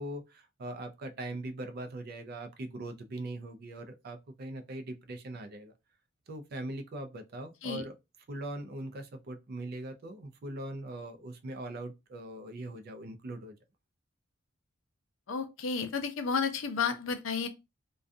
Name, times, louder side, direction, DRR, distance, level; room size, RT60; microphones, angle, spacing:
voice 1, 0.0-5.7 6.3-7.9 8.3-13.5, right 1 dB, 50° right, 0.4 m, -41 dB
voice 2, 15.3-17.5, left 5 dB, 70° left, 0.5 m, -32 dB
2.3 x 2.2 x 2.5 m
head